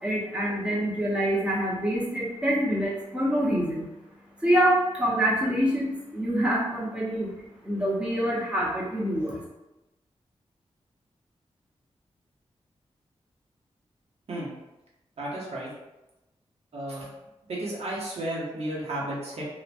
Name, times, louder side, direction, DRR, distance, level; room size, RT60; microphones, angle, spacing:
voice 1, 0.0-3.9 4.4-7.3 7.6-9.4, equal, 10° right, -5 dB, 0.8 m, -26 dB
voice 2, 15.2-15.7 16.7-17.1 17.5-19.4, right 1 dB, 70° right, -5 dB, 0.9 m, -33 dB
2.9 x 2.2 x 2.5 m, 0.98 s
wide cardioid pair, 115°, 11 cm